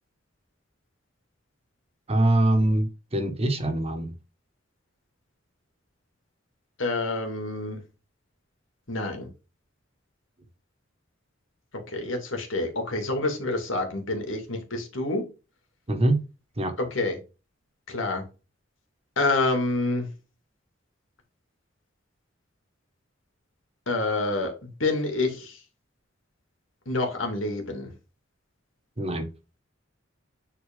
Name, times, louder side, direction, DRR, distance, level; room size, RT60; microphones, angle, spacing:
voice 1, 2.1-4.1 15.9-16.2 16.6-16.7 29.0-29.3, right 1 dB, 30° right, 1.6 m, -23 dB
voice 2, 6.8-7.8 8.9-9.3 11.9-15.2 16.9-17.2 17.9-18.2 19.2-20.1 23.9-25.6 26.9-27.9, left 2 dB, 85° left, 2.7 m, -27 dB
10.0 x 4.3 x 3.8 m
head